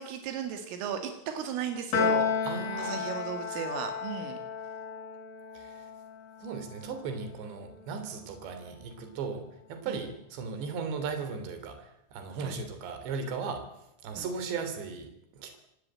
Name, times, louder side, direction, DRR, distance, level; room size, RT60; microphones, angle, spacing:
voice 1, 0.0-2.3 2.8-4.4 9.9-10.0 12.4-12.6 14.1-14.3, right 8 dB, 85° right, 6 dB, 4.7 m, -36 dB
Piano, 1.9-8.4, left 6 dB, 55° left, 5.9 m, -33 dB
voice 2, 2.4-3.0 5.6-5.9 6.4-13.7 14.0-15.6, right 5 dB, 65° right, 7 dB, 5.3 m, -37 dB
26.5 x 17.5 x 8.9 m, 0.82 s
omnidirectional pair, 5.6 m